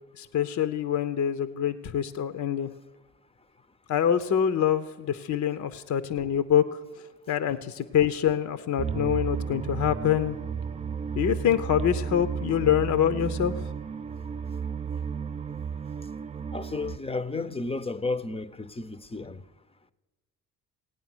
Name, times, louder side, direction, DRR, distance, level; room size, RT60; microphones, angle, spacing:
voice 1, 0.2-2.7 3.9-6.8 7.3-10.4 11.1-13.7, left 9 dB, 50° left, 0.7 m, -25 dB
sound 1, 8.8-17.0, right 6 dB, 20° right, 0.3 m, -33 dB
voice 2, 16.5-19.4, left 3 dB, 15° left, 0.7 m, -32 dB
17.0 x 9.1 x 6.1 m
supercardioid pair, 60°, 37 cm